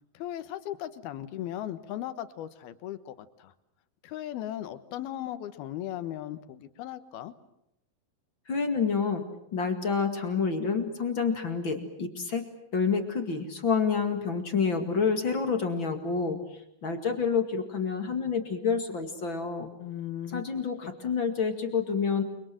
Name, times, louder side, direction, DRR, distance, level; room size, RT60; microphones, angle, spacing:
voice 1, 0.1-3.5 4.0-7.3 19.8-20.4 21.0-21.2, left 12 dB, 75° left, 12 dB, 3.1 m, -37 dB
voice 2, 8.5-9.2 9.5-12.4 12.7-16.4 16.8-19.7 20.3-22.2, left 5 dB, 40° left, 6 dB, 2.2 m, -28 dB
29.5 x 24.0 x 7.7 m, 0.78 s
omnidirectional pair, 4.5 m